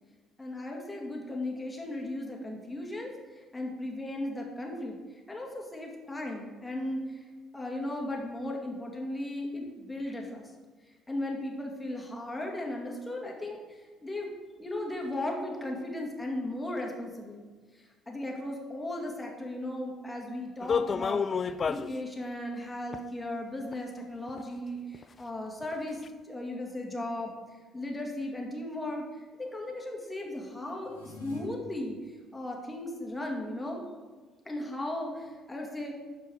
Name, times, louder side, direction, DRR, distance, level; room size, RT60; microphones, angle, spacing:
voice 1, 0.4-5.0 5.3-7.2 7.5-10.4 11.1-13.6 14.0-14.3 14.6-17.4 18.1-26.0 26.2-27.3 27.7-29.0 29.4-32.0 32.3-33.8 34.5-35.9, left 1 dB, 15° left, 0 dB, 2.1 m, -36 dB
sound 1, 20.6-21.9 22.9-23.0 23.7-23.8 24.3-24.4 24.9-25.0 25.6-25.7 26.1-26.2, left 6 dB, 35° left, 0.4 m, -29 dB
sound 2, 30.8-31.4, left 7 dB, 80° left, 2.0 m, -44 dB
12.5 x 4.6 x 4.7 m, 1.4 s
figure-of-eight pair, 50°, 0 cm